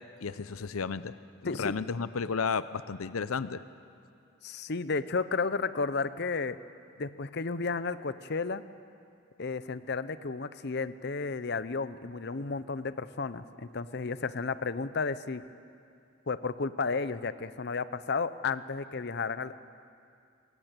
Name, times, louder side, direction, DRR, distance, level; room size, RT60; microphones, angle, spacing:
voice 1, 0.2-1.2 1.4-3.6, left 5 dB, 85° left, 14 dB, 0.7 m, -33 dB
voice 2, 1.4-1.7 4.4-6.6 7.0-8.6 9.4-15.4 16.3-19.6, left 4 dB, 50° left, 14 dB, 0.7 m, -32 dB
21.5 x 18.0 x 9.1 m, 2.5 s
head